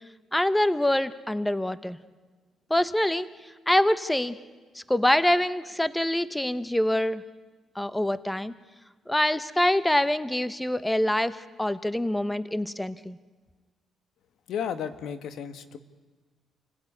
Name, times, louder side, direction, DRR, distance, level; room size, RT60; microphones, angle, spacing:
voice 1, 0.3-2.0 2.7-3.3 3.7-4.4 4.7-7.2 7.8-8.5 9.1-13.2, left 1 dB, 5° left, 15 dB, 0.9 m, -25 dB
voice 2, 14.5-15.8, left 8 dB, 75° left, 11 dB, 1.6 m, -33 dB
28.0 x 17.0 x 9.8 m, 1.3 s
cardioid pair, 90°, 0 cm